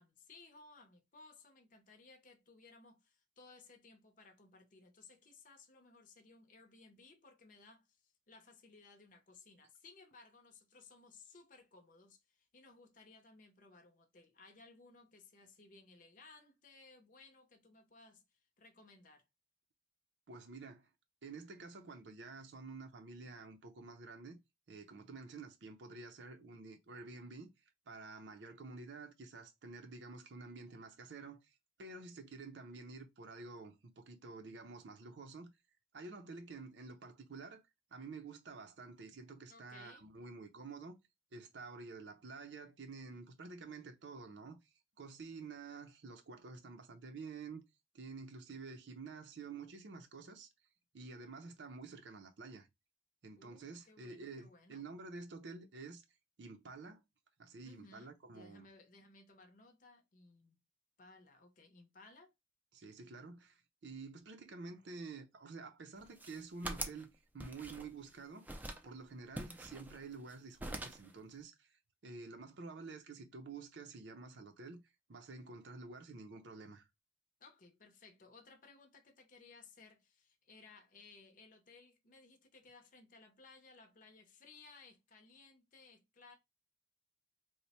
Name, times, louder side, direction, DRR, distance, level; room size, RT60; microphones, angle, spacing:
voice 1, 0.0-18.2 18.6-19.2 39.5-40.1 53.4-54.8 57.6-60.6 61.0-62.3 77.4-86.3, left 3 dB, 50° left, 0.6 m, -60 dB
voice 2, 20.3-20.9 21.2-24.4 24.7-27.5 27.9-35.5 35.9-37.6 37.9-41.0 41.3-44.6 45.0-47.6 47.9-50.5 50.9-52.7 53.2-56.0 56.4-57.0 57.4-58.7 62.7-68.5 68.8-74.8 75.1-76.9, right 4 dB, 90° right, 0.6 m, -50 dB
sound 1, 66.0-67.1 67.4-68.1 68.5-68.9 69.4-70.3 70.6-71.1, right 1 dB, 10° right, 0.4 m, -44 dB
3.1 x 2.1 x 4.1 m
head